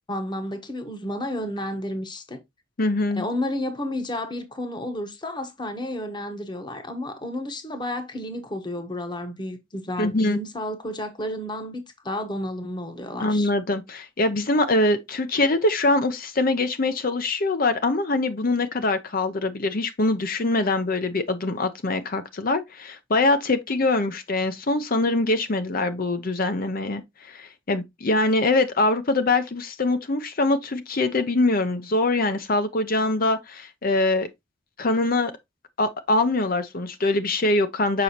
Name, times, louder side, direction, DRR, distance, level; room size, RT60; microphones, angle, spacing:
voice 1, 0.1-2.4 3.1-13.5, left 1 dB, 25° left, 1.1 m, -31 dB
voice 2, 2.8-3.2 10.0-10.4 13.2-34.3 34.8-35.3 35.8-38.0, left 2 dB, 50° left, 0.7 m, -23 dB
6.8 x 5.2 x 2.9 m
head